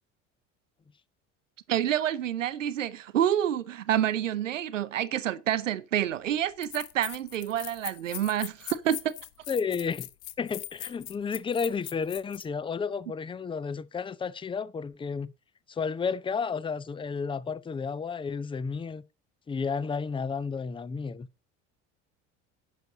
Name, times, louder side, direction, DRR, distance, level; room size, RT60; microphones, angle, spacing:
voice 1, 1.7-9.1, right 11 dB, 85° right, 0.7 m, -28 dB
sound 1, 6.0-6.1 6.6-12.5, left 17 dB, 60° left, 0.9 m, -41 dB
voice 2, 9.5-10.1 10.4-15.3 15.7-19.0 19.5-21.3, left 5 dB, 15° left, 0.6 m, -32 dB
10.5 x 6.7 x 4.0 m
figure-of-eight pair, 60°, 37 cm